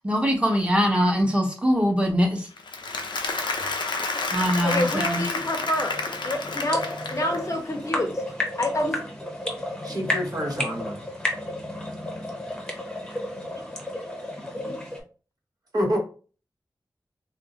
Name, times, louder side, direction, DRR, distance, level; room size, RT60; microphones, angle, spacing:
voice 1, 0.0-2.5 4.3-5.3, equal, 15° right, 1 dB, 1.0 m, -22 dB
Applause, 2.6-7.6, left 3 dB, 90° left, 0.4 m, -30 dB
voice 2, 4.6-6.8 7.1-8.2 8.6-9.0, left 1 dB, 45° left, 4 dB, 0.6 m, -27 dB
sound 1, 5.5-15.0, left 1 dB, 10° left, 0.8 m, -32 dB
voice 3, 9.8-11.0 13.4-13.5 15.7-16.0, equal, 55° right, -1 dB, 0.9 m, -27 dB
2.5 x 2.0 x 3.7 m, 0.37 s
wide cardioid pair, 55°, 8 cm